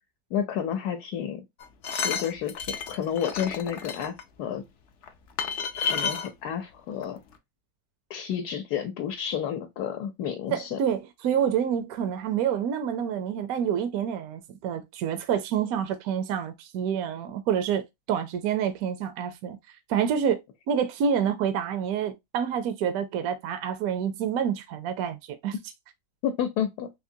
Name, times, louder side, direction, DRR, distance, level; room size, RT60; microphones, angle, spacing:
voice 1, 0.3-1.4 1.9-4.6 5.8-7.2 8.1-10.8 26.2-26.9, left 9 dB, 85° left, 1.2 m, -31 dB
sound 1, 1.6-4.2 5.0-5.1 5.4-6.3 7.0-7.1 7.3-7.4, left 6 dB, 65° left, 0.7 m, -31 dB
voice 2, 10.5-19.6 19.9-20.4 20.7-25.6, right 8 dB, 75° right, 1.0 m, -28 dB
3.6 x 2.8 x 2.6 m
omnidirectional pair, 1.6 m